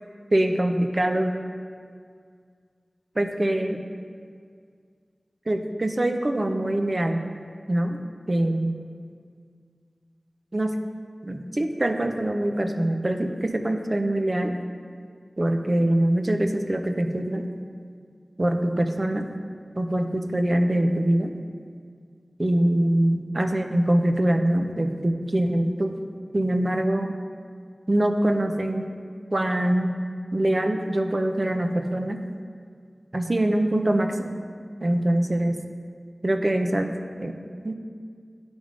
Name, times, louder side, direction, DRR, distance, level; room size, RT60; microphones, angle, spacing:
voice 1, 0.3-1.3 3.2-3.8 5.5-7.2 7.7-8.0 8.3-8.7 10.5-10.8 11.2-14.6 15.4-17.4 18.4-19.3 19.7-21.3 22.4-26.0 26.3-27.2 27.9-28.9 29.3-30.0 30.3-32.2 33.1-34.4 34.8-35.6 36.2-37.4 37.6-37.7, right 1 dB, 40° right, 5 dB, 0.5 m, -24 dB
10.5 x 3.5 x 5.0 m, 2.1 s
wide cardioid pair, 60°, 0 cm